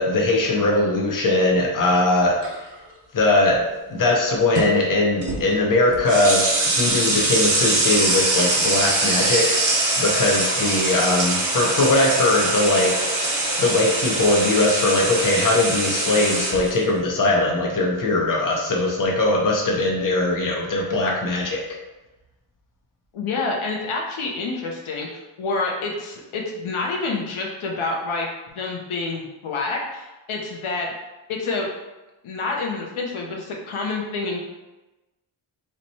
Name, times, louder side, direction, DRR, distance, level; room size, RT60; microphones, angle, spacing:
voice 1, 0.0-2.4 3.1-9.6 10.0-13.3 13.6-21.6, left 2 dB, 40° left, -1 dB, 0.7 m, -20 dB
sound 1, 2.4-2.7 4.5-4.7 5.2-5.4 5.8-16.7, right 2 dB, 65° right, 1.0 m, -23 dB
voice 2, 23.1-30.9 31.3-31.7 32.2-34.4, left 3 dB, 75° left, -1 dB, 0.7 m, -28 dB
3.0 x 2.2 x 4.0 m, 1.1 s
wide cardioid pair, 105°, 49 cm